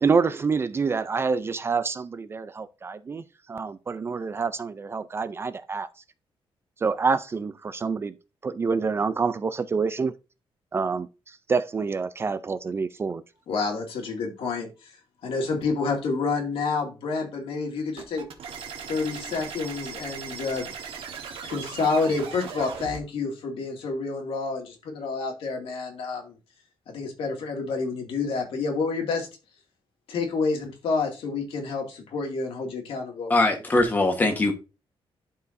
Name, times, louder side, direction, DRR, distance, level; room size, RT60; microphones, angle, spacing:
voice 1, 0.0-3.2 3.5-5.9 6.8-8.1 8.4-10.1 10.7-13.2, right 5 dB, 25° right, 0.4 m, -27 dB
voice 2, 13.5-15.0 15.2-18.2 18.9-20.7 21.4-26.4 26.9-29.3 30.1-33.3, left 4 dB, 80° left, 2.3 m, -29 dB
sound 1, 18.0-23.0, right 7 dB, 80° right, 1.4 m, -38 dB
voice 3, 33.3-34.5, left 2 dB, 20° left, 1.2 m, -21 dB
11.5 x 4.7 x 2.6 m
wide cardioid pair, 180°, 9 cm